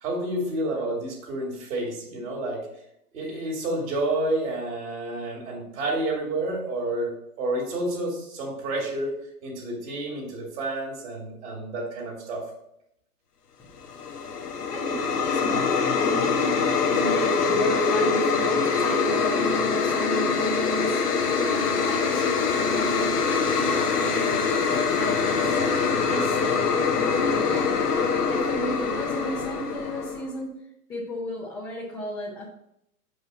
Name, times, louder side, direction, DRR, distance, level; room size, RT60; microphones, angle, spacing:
voice 1, 0.0-2.6 3.1-7.1 7.4-9.1 9.4-12.4, right 1 dB, 65° right, -3 dB, 2.6 m, -29 dB
sound 1, 13.8-30.3, left 5 dB, 90° left, 1.2 m, -24 dB
voice 2, 14.7-25.6 26.1-32.5, equal, 10° left, -6 dB, 0.5 m, -35 dB
sound 2, 19.0-28.3, left 5 dB, 55° left, 1.0 m, -33 dB
5.6 x 5.4 x 4.1 m, 0.78 s
hypercardioid pair, 135°, 45 cm